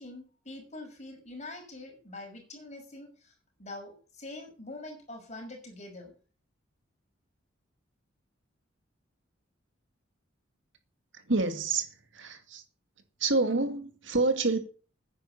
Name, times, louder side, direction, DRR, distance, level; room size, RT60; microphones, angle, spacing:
voice 1, 0.0-3.3 3.6-6.1, left 2 dB, 35° left, 5.9 m, -44 dB
voice 2, 11.1-11.9 12.1-12.6 13.2-14.6, right 3 dB, 65° right, 2.3 m, -27 dB
10.5 x 9.6 x 7.3 m
head